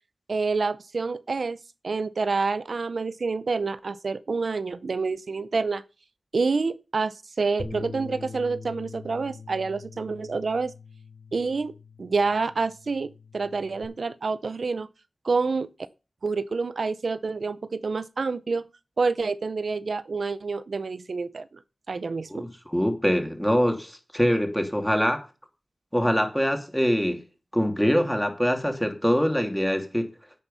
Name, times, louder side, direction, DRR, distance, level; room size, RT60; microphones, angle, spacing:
voice 1, 0.3-1.6 1.8-5.8 6.3-10.7 11.3-14.9 15.2-15.7 16.2-18.7 19.0-21.5 21.9-22.5, right 4 dB, 80° right, 0.5 m, -28 dB
Bass guitar, 7.6-13.8, left 4 dB, 70° left, 3.4 m, -43 dB
voice 2, 22.3-25.2 25.9-27.2 27.5-30.0, equal, ahead, 2.8 m, -24 dB
10.5 x 9.0 x 5.6 m
wide cardioid pair, 75°, 0 cm